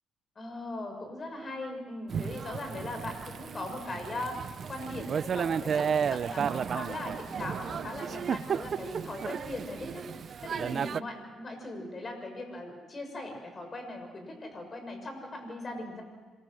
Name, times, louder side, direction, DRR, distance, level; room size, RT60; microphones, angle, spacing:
voice 1, 0.3-10.0 10.4-16.0, left 2 dB, 35° left, 5 dB, 6.4 m, -39 dB
Thunder / Rain, 2.1-11.0, right 7 dB, 55° right, 0.6 m, -33 dB
26.5 x 23.0 x 6.4 m, 1.4 s
cardioid pair, 90°, 0 cm